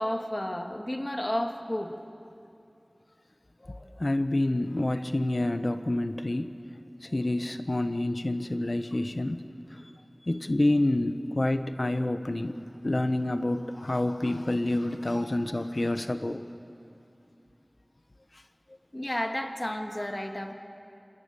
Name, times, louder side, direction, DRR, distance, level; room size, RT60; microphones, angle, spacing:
voice 1, 0.0-1.9 15.2-15.3 18.9-20.5, left 1 dB, 30° left, 4 dB, 2.2 m, -32 dB
voice 2, 3.6-6.5 7.0-9.8 10.3-12.5 12.8-16.4, left 1 dB, 55° left, 9 dB, 1.2 m, -28 dB
27.5 x 26.5 x 7.1 m, 2.6 s
wide cardioid pair, 45°, 0 cm